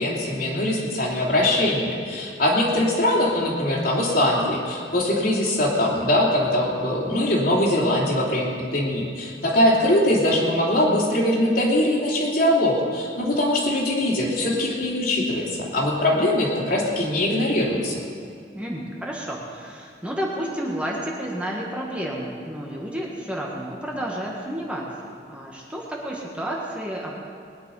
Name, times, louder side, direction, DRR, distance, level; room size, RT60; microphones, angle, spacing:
voice 1, 0.0-18.0, left 1 dB, 55° left, -3 dB, 3.1 m, -22 dB
voice 2, 18.5-27.2, right 1 dB, 5° right, -3 dB, 1.5 m, -31 dB
20.5 x 10.0 x 5.4 m, 2.3 s
head